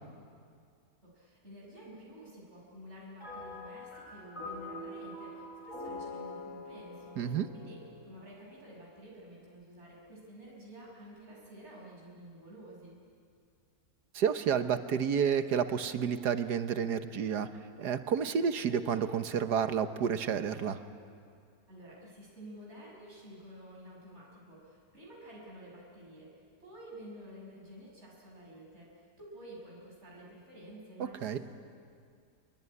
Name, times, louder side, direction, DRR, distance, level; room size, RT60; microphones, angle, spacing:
voice 1, 1.0-13.0 21.7-26.3 26.6-31.4, equal, 40° right, -4 dB, 6.3 m, -51 dB
sound 1, 3.2-8.7, left 2 dB, 50° left, 6.9 m, -44 dB
voice 2, 7.2-7.5 14.1-17.5 17.8-20.8 31.2-31.4, right 7 dB, 90° right, 10 dB, 1.7 m, -30 dB
27.0 x 22.0 x 9.9 m, 2.3 s
omnidirectional pair, 1.7 m